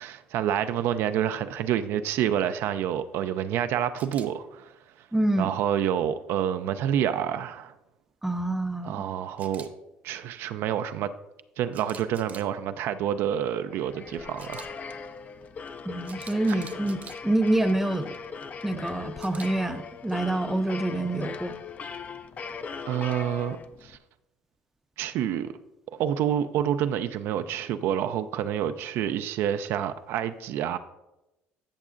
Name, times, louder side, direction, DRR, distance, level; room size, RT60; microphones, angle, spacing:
voice 1, 0.0-4.7 5.4-7.7 8.8-9.7 10.0-11.1 11.6-14.7 16.5-16.6 22.9-24.0 25.0-25.5 25.9-30.8, right 10 dB, 70° right, 0.4 m, -28 dB
Camera, 4.0-4.3 9.4-9.7 11.7-12.5 14.4-14.7 16.0-17.2 19.2-19.5, right 6 dB, 40° right, 0.8 m, -45 dB
voice 2, 5.1-5.5 8.2-9.0 15.9-18.2 18.6-21.6, right 1 dB, 5° right, 0.5 m, -27 dB
sound 1, 13.5-24.0, left 5 dB, 35° left, 0.5 m, -39 dB
14.0 x 6.2 x 2.5 m
supercardioid pair, 90°, 4 cm